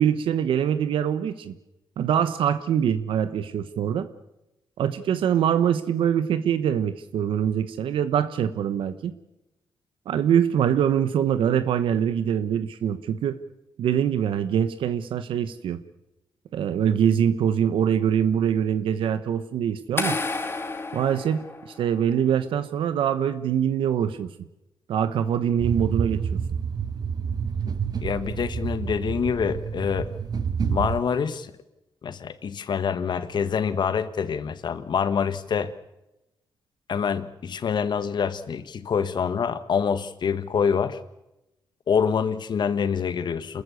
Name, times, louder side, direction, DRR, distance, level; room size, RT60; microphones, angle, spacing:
voice 1, 0.0-1.5 2.0-4.1 4.8-9.1 10.1-13.4 13.8-15.8 16.5-20.2 20.9-24.3 24.9-26.4, right 9 dB, 85° right, 12 dB, 1.1 m, -24 dB
sound 1, 20.0-22.1, left 3 dB, 25° left, 2.3 m, -30 dB
sound 2, 25.6-31.0, right 6 dB, 50° right, 1.0 m, -28 dB
voice 2, 28.0-30.1 30.7-31.5 32.0-35.7 36.9-41.0 41.9-43.6, left 6 dB, 60° left, 13 dB, 1.4 m, -26 dB
27.5 x 14.5 x 8.4 m, 0.95 s
cardioid pair, 85°, 9 cm